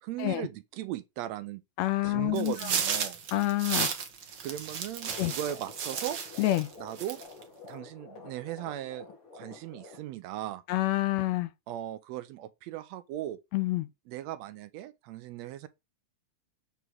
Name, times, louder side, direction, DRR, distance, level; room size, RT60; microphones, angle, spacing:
voice 1, 0.0-1.6 2.0-3.2 4.4-6.2 6.8-7.2 7.6-9.1 9.3-10.6 11.7-13.4 14.1-15.7, right 13 dB, 80° right, 1.7 m, -38 dB
voice 2, 1.8-2.5 3.3-3.9 5.2-5.3 6.4-6.7 10.7-11.5 13.5-13.8, left 17 dB, 75° left, 1.7 m, -27 dB
sound 1, 2.4-6.7 7.0-7.4, right 7 dB, 50° right, 1.4 m, -33 dB
sound 2, 5.0-10.0, left 4 dB, 50° left, 2.9 m, -49 dB
8.1 x 3.6 x 6.1 m
omnidirectional pair, 3.3 m